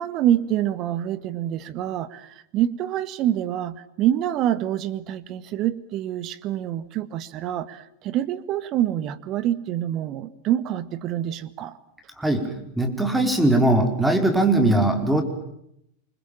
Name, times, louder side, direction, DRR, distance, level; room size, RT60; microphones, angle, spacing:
voice 1, 0.0-11.8, right 11 dB, 35° right, 16 dB, 1.7 m, -26 dB
voice 2, 12.2-15.2, right 2 dB, 5° right, 6 dB, 4.8 m, -20 dB
28.0 x 25.0 x 7.4 m, 0.76 s
figure-of-eight pair, 90°, 0 cm